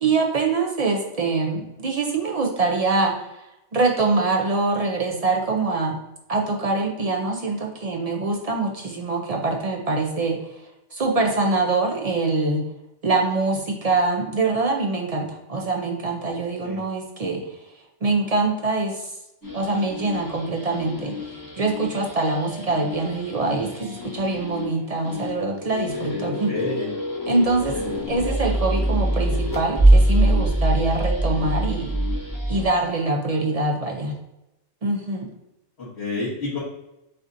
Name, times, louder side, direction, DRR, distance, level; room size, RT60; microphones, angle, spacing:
voice 1, 0.0-6.0 6.3-10.4 10.9-12.6 13.0-17.4 18.0-19.1 19.5-21.3 21.6-26.5 27.3-27.8 28.1-31.9 32.5-34.1 34.8-35.3, right 3 dB, 55° right, 1 dB, 0.4 m, -24 dB
sound 1, 19.4-32.7, right 1 dB, 15° left, 0.9 m, -24 dB
voice 2, 25.9-26.9 27.7-27.9 35.8-36.6, left 2 dB, 55° left, -11 dB, 1.9 m, -30 dB
7.6 x 2.6 x 2.6 m, 0.91 s
omnidirectional pair, 1.3 m